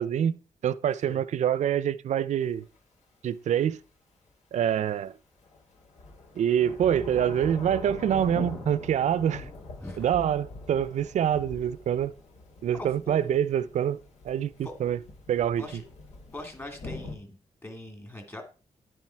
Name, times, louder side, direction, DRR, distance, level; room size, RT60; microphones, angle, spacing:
voice 1, 0.0-2.6 3.2-3.8 4.5-5.1 6.4-9.4 10.0-12.1 12.6-14.0 14.2-15.0 15.3-15.6, right 9 dB, 80° right, 0.6 m, -26 dB
Thunder / Rain, 2.4-2.5 5.4-17.2, left 3 dB, 85° left, 4.7 m, -43 dB
voice 2, 9.8-10.1 12.8-13.3 14.6-14.7 15.6-15.8 16.3-18.4, left 1 dB, 20° left, 2.5 m, -42 dB
10.5 x 7.7 x 4.7 m
wide cardioid pair, 160°, 12 cm